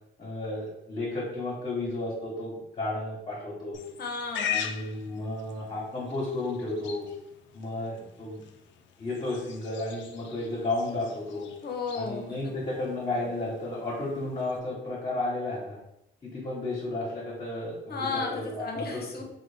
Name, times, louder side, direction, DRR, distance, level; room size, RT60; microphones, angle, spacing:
voice 1, 0.2-3.8 4.5-7.1 7.5-8.4 9.0-11.5 11.9-15.8 16.2-19.0, left 2 dB, 35° left, -7 dB, 1.2 m, -33 dB
Livestock farm animals working animals, 3.7-14.6, left 8 dB, 70° left, 0.4 m, -41 dB
voice 2, 4.0-4.6 11.6-12.4 17.9-19.2, left 4 dB, 55° left, 2 dB, 0.8 m, -34 dB
3.1 x 2.3 x 3.4 m, 0.80 s
cardioid pair, 90°, 20 cm